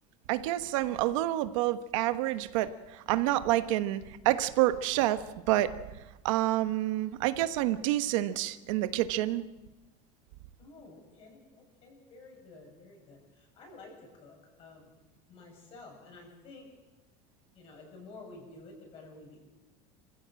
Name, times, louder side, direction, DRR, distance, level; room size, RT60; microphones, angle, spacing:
voice 1, 0.3-5.7 6.2-9.5, right 15 dB, 75° right, 11 dB, 1.2 m, -28 dB
voice 2, 10.6-14.9 15.3-16.7 17.5-19.4, left 3 dB, 35° left, 1 dB, 7.5 m, -51 dB
27.0 x 15.5 x 7.7 m, 1.1 s
cardioid pair, 175°, 17 cm